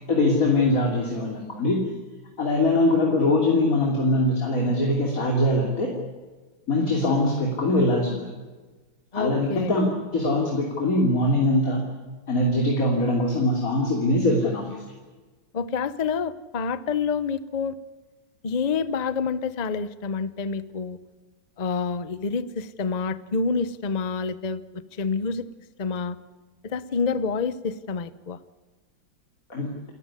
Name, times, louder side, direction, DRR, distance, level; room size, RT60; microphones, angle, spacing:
voice 1, 0.1-1.8 2.4-5.9 6.7-8.2 9.1-9.9 10.1-11.9 12.3-14.7 29.5-29.8, left 1 dB, 40° left, 0 dB, 3.4 m, -22 dB
voice 2, 9.1-9.7 15.5-17.8 18.4-21.0 21.6-25.5 25.8-26.2 26.6-28.4, left 5 dB, 85° left, 15 dB, 0.3 m, -28 dB
29.0 x 15.0 x 9.8 m, 1.3 s
omnidirectional pair, 2.2 m